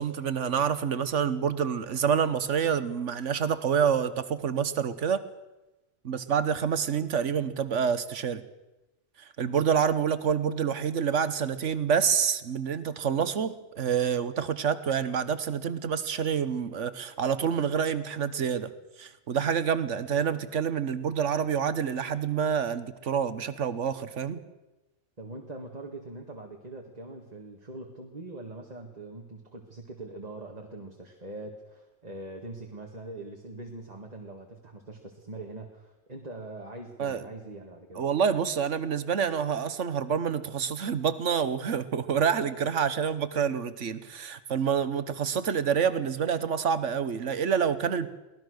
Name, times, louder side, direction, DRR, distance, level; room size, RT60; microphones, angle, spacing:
voice 1, 0.0-5.2 6.0-8.4 9.2-18.7 19.0-24.4 37.0-37.2 37.9-48.1, right 7 dB, 90° right, 13 dB, 1.5 m, -27 dB
voice 2, 25.2-38.0, right 2 dB, 35° right, 2 dB, 2.0 m, -42 dB
23.5 x 18.0 x 6.5 m, 1.0 s
omnidirectional pair, 1.2 m